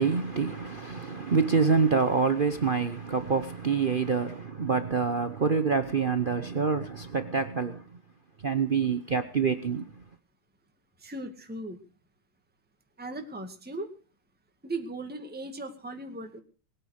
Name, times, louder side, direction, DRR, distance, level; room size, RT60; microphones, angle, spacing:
voice 1, 0.0-7.8 8.4-9.9, right 5 dB, 80° right, 0.4 m, -26 dB
voice 2, 11.0-11.8 13.0-13.9 14.6-16.4, right 2 dB, 5° right, 1.8 m, -37 dB
21.0 x 9.4 x 6.5 m
omnidirectional pair, 2.4 m